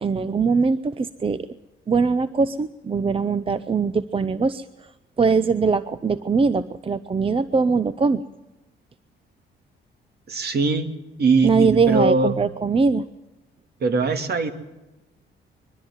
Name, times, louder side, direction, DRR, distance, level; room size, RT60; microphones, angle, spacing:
voice 1, 0.0-1.5 1.9-4.6 5.2-8.2 11.4-13.0, right 4 dB, 25° right, 14 dB, 0.7 m, -21 dB
voice 2, 10.3-10.9 11.2-12.3 13.8-14.5, right 3 dB, 55° right, 7 dB, 2.4 m, -21 dB
22.5 x 13.0 x 9.7 m, 1.0 s
cardioid pair, 90°, 20 cm